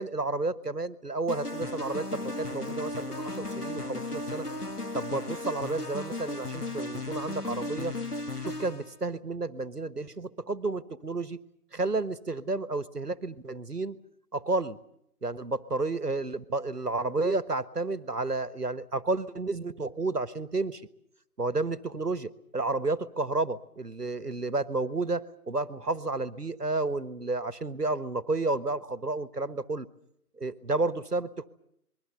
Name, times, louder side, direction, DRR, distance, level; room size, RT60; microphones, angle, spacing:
voice 1, 0.0-4.5 4.9-7.9 8.4-11.4 11.7-13.9 14.3-14.8 15.2-20.8 21.4-29.9 30.4-31.5, right 3 dB, 75° right, 16 dB, 1.5 m, -31 dB
sound 1, 1.3-8.9, left 2 dB, 70° left, 2.2 m, -35 dB
27.0 x 22.0 x 6.8 m, 0.75 s
figure-of-eight pair, 180°, 47 cm